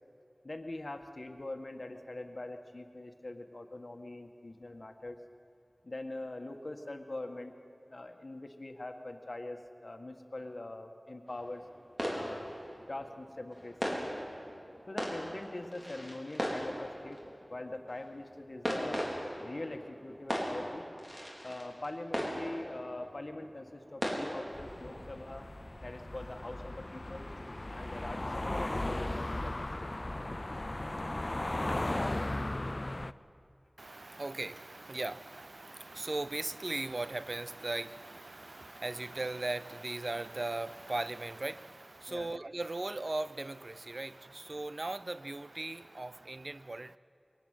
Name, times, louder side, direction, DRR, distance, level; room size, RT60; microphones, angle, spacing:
voice 1, 0.4-5.2 5.8-7.5 7.9-11.6 12.1-12.5 12.9-14.0 14.9-17.2 17.5-19.0 19.4-20.9 21.4-25.5 25.8-27.3 27.7-29.9 42.1-42.3, left 2 dB, 55° left, 1.7 m, -43 dB
sound 1, 11.3-25.4, equal, 25° right, 4.5 m, -39 dB
sound 2, 24.5-33.1, left 1 dB, 40° left, 0.5 m, -36 dB
voice 2, 33.8-47.0, right 2 dB, 60° right, 0.5 m, -38 dB
22.5 x 18.5 x 9.2 m
wide cardioid pair, 50°, 0 cm